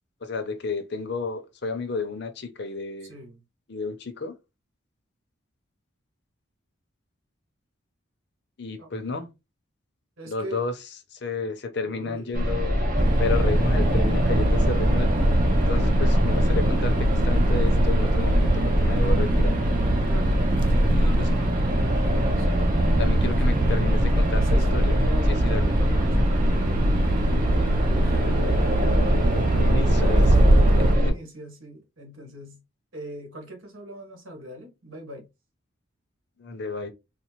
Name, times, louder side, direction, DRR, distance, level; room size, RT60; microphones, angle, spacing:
voice 1, 0.2-3.1 3.7-4.3 8.6-9.3 10.3-10.8 11.1-12.8 13.2-15.1 15.7-19.6 20.8-21.4 22.9-25.0 25.3-25.7 29.5-31.1 36.4-36.9, left 3 dB, 55° left, 0.6 m, -32 dB
voice 2, 3.1-3.4 8.8-8.9 10.2-10.6 11.8-12.3 20.0-21.5 22.0-22.5 22.9-23.6 24.4-27.1 28.0-28.9 29.2-32.6 32.9-35.3, right 1 dB, 75° right, 1.5 m, -41 dB
sound 1, 12.3-31.1, equal, 40° right, 0.8 m, -24 dB
sound 2, 13.0-31.0, right 1 dB, 25° right, 0.3 m, -23 dB
4.1 x 2.1 x 2.9 m
head